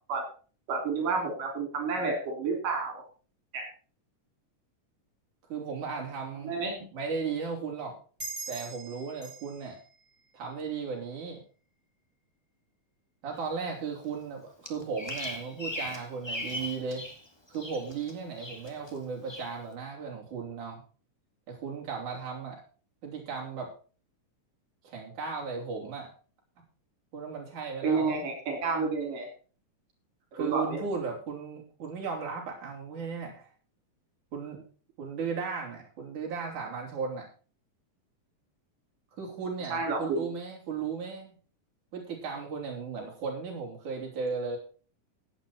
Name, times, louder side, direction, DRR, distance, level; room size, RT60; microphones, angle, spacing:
voice 1, 0.7-3.0 3.5-3.6 6.4-6.8 27.8-29.3 30.4-30.8 39.7-40.3, right 4 dB, 85° right, 3 dB, 5.2 m, -30 dB
voice 2, 5.5-6.5 6.9-8.0 8.5-9.8 10.3-11.4 13.2-17.0 17.5-20.8 21.5-22.6 23.0-23.7 24.8-26.1 27.1-28.2 30.3-33.5 34.3-34.6 35.0-37.2 39.2-41.4 41.9-44.6, right 5 dB, 65° right, -1 dB, 4.8 m, -36 dB
sound 1, 8.2-11.3, right 3 dB, 15° right, 7.4 m, -44 dB
Bird vocalization bird call bird song, 14.7-17.2 17.5-18.1 18.4-18.9 19.3-19.5, left 1 dB, 10° left, 1.6 m, -38 dB
16.0 x 9.0 x 4.4 m, 0.38 s
omnidirectional pair, 3.7 m